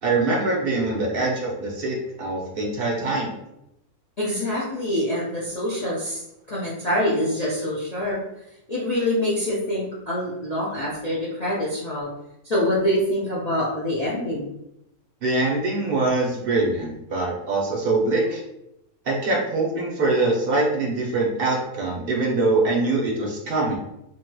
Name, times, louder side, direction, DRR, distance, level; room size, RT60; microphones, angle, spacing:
voice 1, 0.0-3.3 15.2-18.4 19.0-23.8, right 2 dB, 50° right, -2 dB, 0.7 m, -23 dB
voice 2, 4.2-6.2 6.5-8.2 8.7-12.1 12.4-14.5, left 1 dB, 60° left, -7 dB, 0.4 m, -25 dB
3.1 x 2.8 x 2.2 m, 0.85 s
omnidirectional pair, 1.5 m